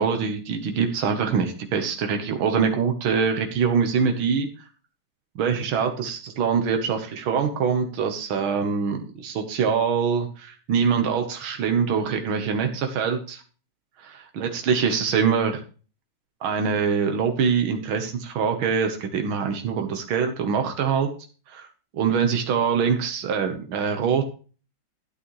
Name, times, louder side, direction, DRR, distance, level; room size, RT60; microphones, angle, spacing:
voice 1, 0.0-4.5 5.4-13.4 14.0-15.6 16.4-21.1 21.5-21.7 21.9-24.2, right 6 dB, 85° right, 5 dB, 1.9 m, -24 dB
13.0 x 8.4 x 3.1 m, 0.36 s
omnidirectional pair, 2.2 m